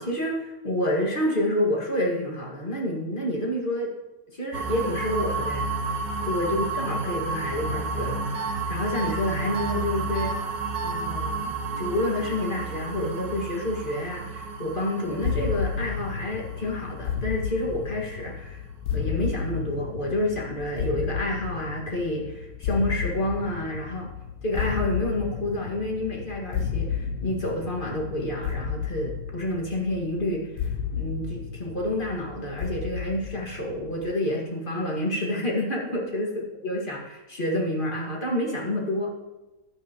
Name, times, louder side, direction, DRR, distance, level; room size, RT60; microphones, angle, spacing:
voice 1, 0.0-3.9 4.3-5.7 6.2-10.4 10.8-18.6 18.9-24.1 24.4-36.3 36.6-39.2, left 1 dB, 30° left, -1 dB, 2.1 m, -29 dB
sound 1, 4.5-18.3, right 3 dB, 90° right, 1.6 m, -32 dB
sound 2, 8.3-8.5 8.9-9.1 9.5-9.7 10.1-10.3 10.7-10.9, right 6 dB, 50° right, 2.1 m, -32 dB
sound 3, 15.2-34.1, left 7 dB, 85° left, 1.4 m, -32 dB
15.0 x 9.6 x 3.0 m, 1.1 s
omnidirectional pair, 1.8 m